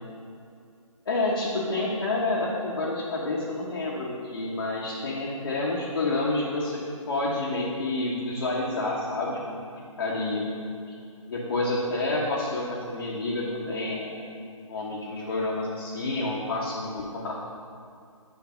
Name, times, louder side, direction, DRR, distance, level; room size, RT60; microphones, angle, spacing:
voice 1, 1.0-9.6 10.0-10.5 10.9-11.0 11.3-14.2 14.5-17.3, left 2 dB, 45° left, -5 dB, 1.1 m, -29 dB
9.4 x 3.2 x 5.6 m, 2.4 s
hypercardioid pair, 165°, 18 cm